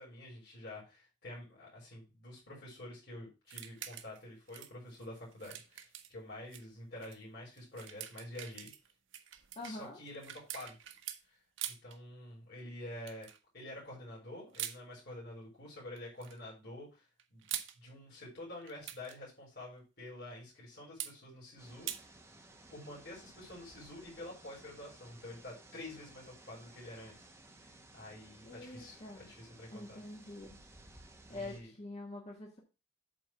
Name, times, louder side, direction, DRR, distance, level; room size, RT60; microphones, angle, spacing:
voice 1, 0.0-8.7 9.6-10.8 11.3-11.4 11.7-13.3 13.5-22.1 22.7-27.3 27.6-30.0 31.3-31.7, left 1 dB, 60° left, -4 dB, 3.9 m, -48 dB
sound 1, 3.5-4.2 4.5-6.7 7.0-7.2 7.6-11.2 11.6-12.0 13.1-13.4 14.5-14.8 15.9-16.4 17.2-17.8 18.6-19.2 21.0-21.1 21.9-22.0, right 11 dB, 85° right, 0.8 m, -44 dB
voice 2, 9.5-10.0 28.4-29.3 29.7-30.6 31.3-32.6, left 2 dB, 35° left, -1 dB, 1.6 m, -45 dB
sound 2, 21.6-31.6, right 2 dB, 15° right, 1.2 m, -58 dB
7.9 x 3.9 x 5.8 m, 0.29 s
head